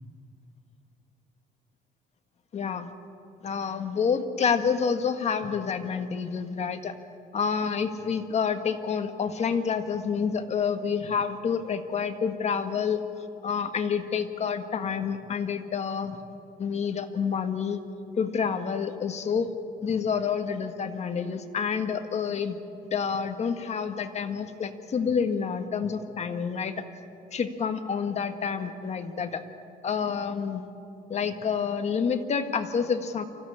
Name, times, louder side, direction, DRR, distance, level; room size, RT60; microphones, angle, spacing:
voice 1, 2.5-2.9 3.4-6.9 7.3-13.0 13.4-16.2 16.6-17.8 18.2-19.5 19.8-22.6 22.9-26.8 27.3-29.4 29.8-30.7 31.1-33.2, left 6 dB, 40° left, 7 dB, 1.7 m, -28 dB
25.0 x 15.5 x 9.9 m, 2.7 s
cardioid pair, 110°, 17 cm